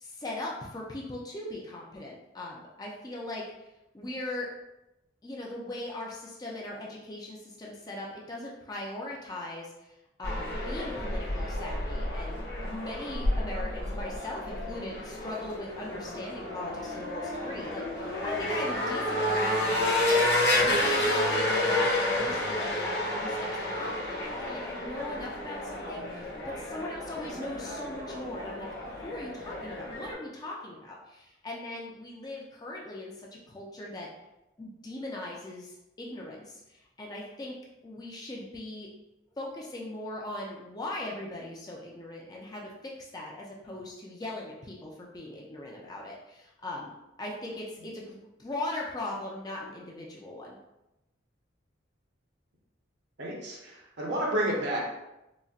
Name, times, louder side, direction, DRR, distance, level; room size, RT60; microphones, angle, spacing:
voice 1, 0.0-3.4 3.9-4.5 5.2-9.9 10.2-20.2 20.5-23.3 23.6-34.1 34.6-37.5 37.8-38.9 39.4-46.9 47.2-50.6, left 1 dB, 20° left, -3 dB, 0.4 m, -39 dB
sound 1, 10.2-30.1, left 1 dB, 55° left, 0.7 m, -30 dB
voice 2, 53.2-54.8, right 1 dB, 60° right, -3 dB, 0.8 m, -30 dB
3.9 x 2.1 x 2.3 m, 0.92 s
head